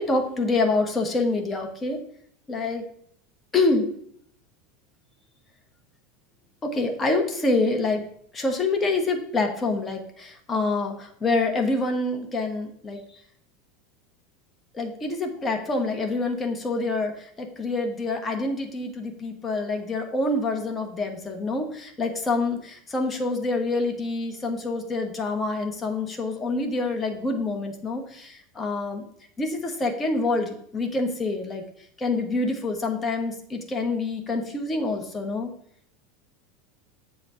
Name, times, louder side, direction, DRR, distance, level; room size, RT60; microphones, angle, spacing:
voice 1, 0.0-2.0 2.5-2.8 3.5-3.9 6.6-8.1 8.3-13.0 14.7-29.0 29.4-31.6 32.0-35.5, left 3 dB, 20° left, 3 dB, 1.3 m, -26 dB
7.7 x 4.0 x 5.8 m, 0.65 s
figure-of-eight pair, 80°, 0 cm